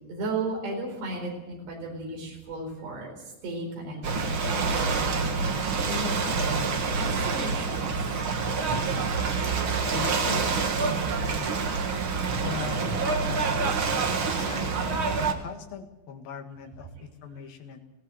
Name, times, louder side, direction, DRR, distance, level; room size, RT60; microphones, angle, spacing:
voice 1, 0.1-7.9 12.2-12.5 13.2-13.4, right 2 dB, 80° right, 1 dB, 6.6 m, -35 dB
Ocean / Boat Water vehicle, 4.0-15.3, right 4 dB, 60° right, 1.3 m, -27 dB
voice 2, 9.2-9.6 9.9-11.6 12.4-13.0 13.2-14.8 15.3-17.8, left 7 dB, 60° left, 4 dB, 3.5 m, -40 dB
20.0 x 17.0 x 8.0 m, 1.0 s
omnidirectional pair, 4.8 m